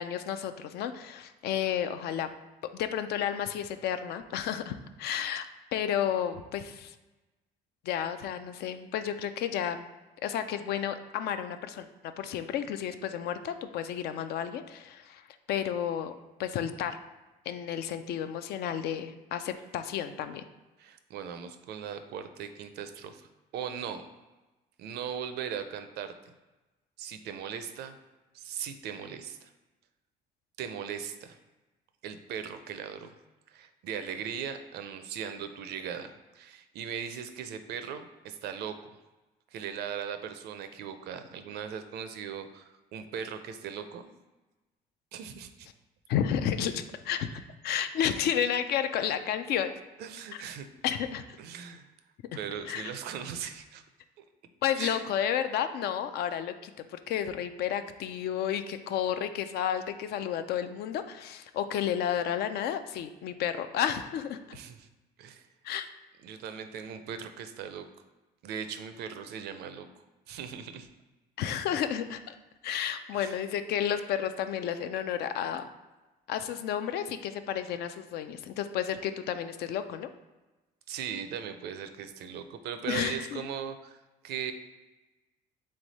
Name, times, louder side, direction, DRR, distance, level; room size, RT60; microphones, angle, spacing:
voice 1, 0.0-2.3 2.7-5.5 5.7-6.9 7.8-9.8 10.2-15.2 15.5-16.1 16.4-17.0 17.5-20.4 46.1-47.3 47.6-49.8 50.8-51.2 52.7-52.9 54.6-64.6 65.6-65.9 71.4-72.3 72.6-75.6 76.3-80.1 82.9-83.4, left 9 dB, 70° left, 10 dB, 0.4 m, -32 dB
voice 2, 20.8-23.3 23.5-24.1 24.8-26.1 27.0-28.0 28.3-29.5 30.6-31.4 32.0-33.1 33.5-38.9 39.5-44.1 45.1-45.7 50.0-50.7 51.4-51.9 52.3-53.8 54.8-55.0 64.5-64.9 65.2-65.5 66.2-67.9 68.4-69.9 70.3-70.9 73.1-73.4 80.9-84.0 84.2-84.5, right 8 dB, 75° right, 9 dB, 0.5 m, -39 dB
3.6 x 3.2 x 4.0 m, 1.1 s
cardioid pair, 110°, 17 cm